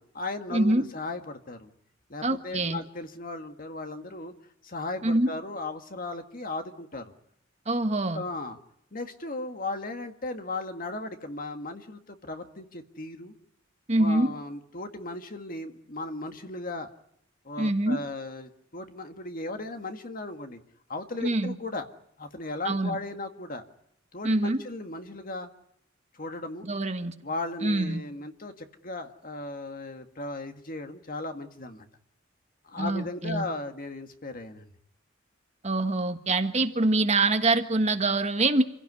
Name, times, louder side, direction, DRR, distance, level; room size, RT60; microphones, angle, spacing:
voice 1, 0.0-1.7 2.1-4.3 4.6-7.1 8.1-8.6 8.9-13.3 13.9-16.9 17.5-20.6 20.9-21.9 22.2-23.6 24.1-25.5 26.1-26.7 27.2-31.9 32.6-34.7, left 2 dB, 45° left, 6 dB, 1.9 m, -36 dB
voice 2, 0.5-0.9 2.2-2.8 5.0-5.3 7.7-8.2 13.9-14.3 17.6-18.0 21.2-21.5 22.6-23.0 24.2-24.6 26.7-27.1 27.6-28.0 32.8-33.4 35.6-38.6, right 2 dB, 35° right, 7 dB, 1.5 m, -25 dB
27.5 x 16.5 x 9.7 m, 0.74 s
head